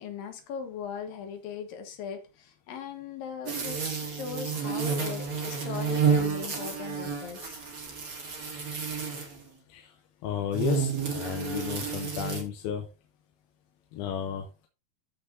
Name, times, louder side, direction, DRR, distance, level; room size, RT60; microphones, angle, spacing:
voice 1, 0.0-7.6, left 7 dB, 70° left, 3.0 m, -39 dB
sound 1, 3.4-9.4 10.5-12.4, right 6 dB, 80° right, 0.7 m, -30 dB
voice 2, 10.2-12.9 13.9-14.5, left 8 dB, 85° left, 2.8 m, -33 dB
13.5 x 5.5 x 2.7 m
omnidirectional pair, 4.3 m